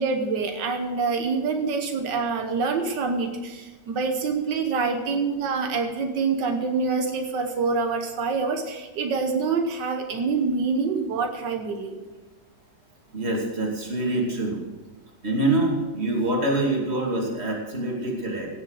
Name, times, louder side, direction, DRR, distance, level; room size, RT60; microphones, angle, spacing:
voice 1, 0.0-11.9, right 4 dB, 90° right, 5 dB, 1.8 m, -26 dB
voice 2, 13.1-14.6 15.2-18.5, right 2 dB, 35° right, -1 dB, 2.7 m, -25 dB
16.5 x 7.4 x 6.4 m, 1.2 s
omnidirectional pair, 1.9 m